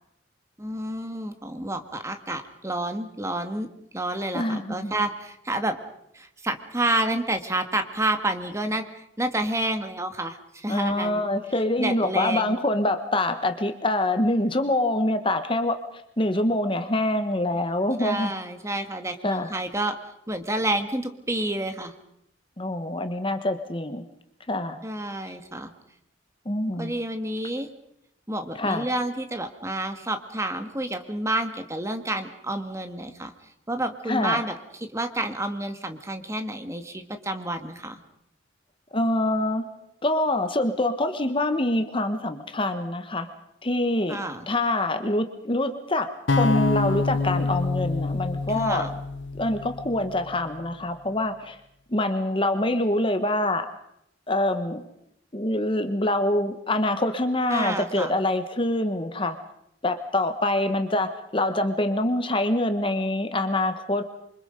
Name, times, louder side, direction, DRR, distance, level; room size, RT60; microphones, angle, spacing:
voice 1, 0.6-3.7 3.9-5.8 6.1-11.3 11.8-12.6 18.0-20.0 20.3-21.9 24.8-25.7 26.8-27.7 28.3-33.3 33.7-38.0 44.1-44.5 48.6-48.9 57.5-58.1, right 1 dB, 15° right, 7 dB, 1.8 m, -29 dB
voice 2, 4.3-4.9 10.7-15.8 16.2-18.3 19.2-19.5 22.6-24.0 24.5-24.8 26.4-26.9 28.5-28.9 34.1-34.4 38.9-39.6 40.0-43.3 43.6-48.9 49.4-51.6 51.9-53.7 54.3-54.9 55.3-59.4 59.8-64.0, left 1 dB, 30° left, 9 dB, 1.3 m, -25 dB
sound 1, 46.3-50.4, left 3 dB, 75° left, 0.8 m, -26 dB
27.5 x 24.5 x 5.2 m, 0.78 s
head